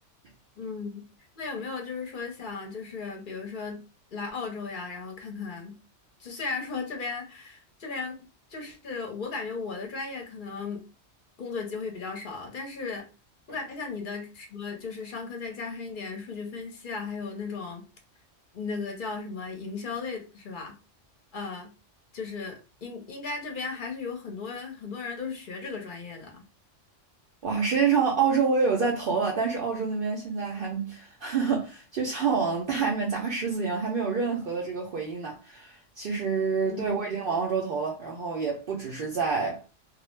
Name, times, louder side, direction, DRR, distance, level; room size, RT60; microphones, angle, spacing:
voice 1, 0.6-1.0 1.4-3.8 4.1-5.8 6.2-8.2 8.5-10.8 11.4-13.0 13.5-17.8 18.5-20.8 21.3-21.7 22.1-26.4 36.6-36.9, left 4 dB, 50° left, 0.8 m, -36 dB
voice 2, 27.4-39.6, right 5 dB, 60° right, 0.6 m, -27 dB
2.3 x 2.0 x 3.1 m
omnidirectional pair, 1.2 m